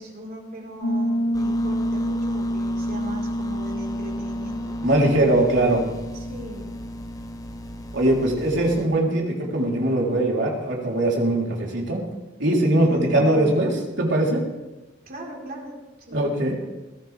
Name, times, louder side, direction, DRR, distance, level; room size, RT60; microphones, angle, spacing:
voice 1, 0.0-4.8 6.1-6.8 12.8-13.6 15.1-16.5, equal, 50° right, -2 dB, 4.3 m, -38 dB
Piano, 0.8-9.3, equal, 60° left, 1.1 m, -29 dB
sound 1, 1.3-8.9, left 1 dB, 20° left, 1.0 m, -40 dB
voice 2, 4.8-5.8 7.9-12.0 12.4-14.4 16.1-16.5, right 1 dB, 70° right, -2 dB, 3.7 m, -21 dB
21.0 x 15.5 x 3.5 m, 1.1 s
head